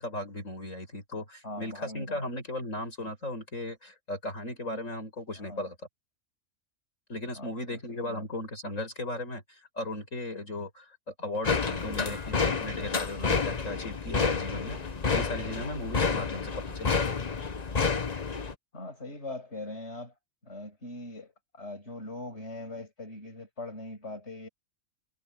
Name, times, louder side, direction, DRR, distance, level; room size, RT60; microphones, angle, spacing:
voice 1, 0.0-5.8 7.1-14.8 15.1-16.9, left 1 dB, 75° left, 7.6 m, -37 dB
voice 2, 1.4-2.3 4.7-4.8 5.4-5.7 7.3-8.3 18.7-20.1 20.4-24.5, left 2 dB, 55° left, 7.5 m, -41 dB
sound 1, 11.4-18.5, left 5 dB, 35° left, 1.1 m, -29 dB
omnidirectional pair, 1.4 m